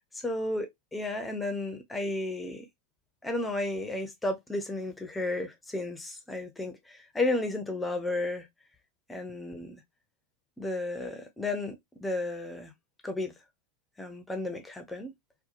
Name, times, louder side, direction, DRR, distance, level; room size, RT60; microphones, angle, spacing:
voice 1, 0.1-2.7 3.2-8.5 9.1-9.8 10.6-12.7 13.0-13.3 14.0-15.1, left 2 dB, 10° left, 0.6 m, -33 dB
2.8 x 2.2 x 2.5 m
figure-of-eight pair, 90°, 0 cm